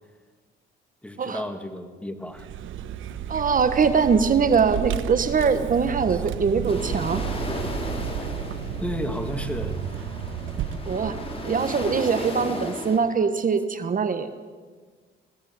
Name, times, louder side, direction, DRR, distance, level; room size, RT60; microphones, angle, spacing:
voice 1, 1.0-2.5 6.1-6.2 8.8-9.8, left 1 dB, 5° left, 7 dB, 2.2 m, -32 dB
Vehicle, 2.3-12.7, right 9 dB, 80° right, 1.3 m, -33 dB
voice 2, 3.3-7.2 10.9-11.2 11.4-14.3, right 5 dB, 45° right, 10 dB, 1.4 m, -22 dB
sound 1, 6.7-13.0, left 2 dB, 30° left, 5.3 m, -35 dB
22.0 x 16.0 x 9.5 m, 1.5 s
cardioid pair, 90°, 20 cm